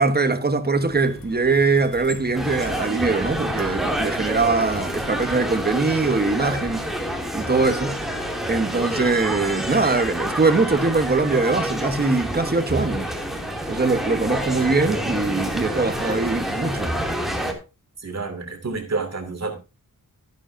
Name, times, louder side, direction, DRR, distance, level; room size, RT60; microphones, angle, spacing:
voice 1, 0.0-6.9 7.3-7.9 8.5-13.1 13.7-16.9, right 3 dB, 30° right, 1.3 m, -22 dB
sound 1, 0.9-7.1, left 3 dB, 90° left, 1.9 m, -43 dB
sound 2, 2.3-17.5, equal, ahead, 2.7 m, -28 dB
voice 2, 18.0-19.5, right 4 dB, 50° right, 2.7 m, -29 dB
13.0 x 11.0 x 2.7 m
wide cardioid pair, 115°, 33 cm